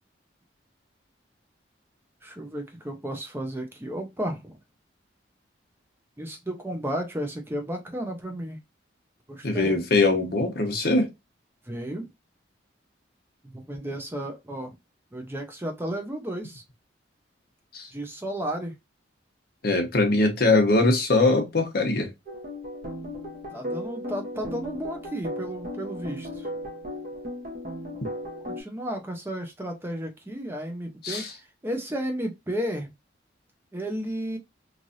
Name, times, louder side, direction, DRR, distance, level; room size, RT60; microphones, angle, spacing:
voice 1, 2.2-4.6 6.2-8.6 9.3-9.8 11.7-12.1 13.4-14.7 15.1-16.6 17.9-18.8 23.5-26.5 28.5-32.9 33.7-34.4, right 1 dB, 10° right, 0.5 m, -33 dB
voice 2, 9.4-11.1 17.7-17.9 19.6-22.1 31.0-31.3, left 2 dB, 55° left, 0.8 m, -22 dB
sound 1, 22.3-28.6, left 1 dB, 50° right, 1.0 m, -36 dB
3.1 x 2.5 x 2.6 m
head